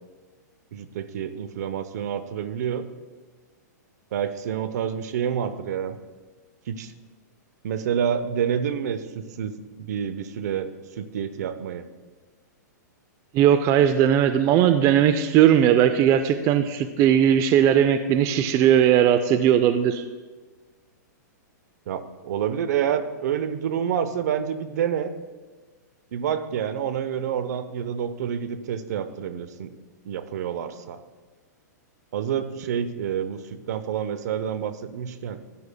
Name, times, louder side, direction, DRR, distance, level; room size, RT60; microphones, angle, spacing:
voice 1, 0.7-2.9 4.1-6.0 6.7-6.9 7.6-10.7 11.0-11.8 21.9-25.1 26.1-29.7 30.0-31.0 32.1-35.4, right 8 dB, 65° right, 11 dB, 0.7 m, -28 dB
voice 2, 13.3-20.0, right 10 dB, 35° right, 10 dB, 0.4 m, -18 dB
14.5 x 9.7 x 2.2 m, 1.3 s
hypercardioid pair, 125°, 10 cm